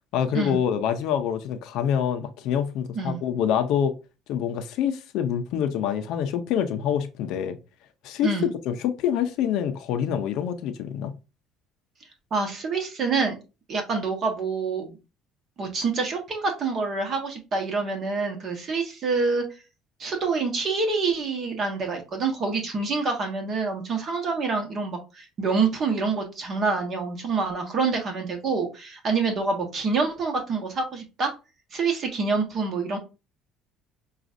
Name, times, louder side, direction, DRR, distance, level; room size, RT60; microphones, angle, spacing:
voice 1, 0.1-3.9 4.3-7.6 8.0-11.1, left 9 dB, 75° left, 0.6 m, -26 dB
voice 2, 12.3-13.4 13.7-15.0 15.6-19.4 20.0-31.3 31.7-33.0, right 4 dB, 45° right, 1.2 m, -26 dB
6.0 x 2.4 x 2.6 m
cardioid pair, 120°, 0 cm